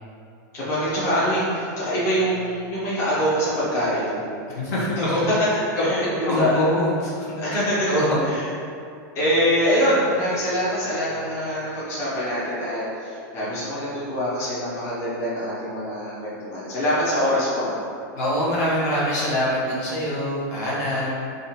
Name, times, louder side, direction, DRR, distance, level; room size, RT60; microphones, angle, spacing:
voice 1, 0.5-4.2 5.0-6.6 7.4-7.9 8.2-8.4 9.1-17.8, equal, 25° left, -10 dB, 0.9 m, -24 dB
voice 2, 4.5-5.2 6.0-7.1 7.5-7.6 7.9-8.2 18.1-21.3, equal, 55° left, -7 dB, 1.2 m, -24 dB
3.7 x 2.5 x 4.1 m, 2.5 s
supercardioid pair, 165°, 10 cm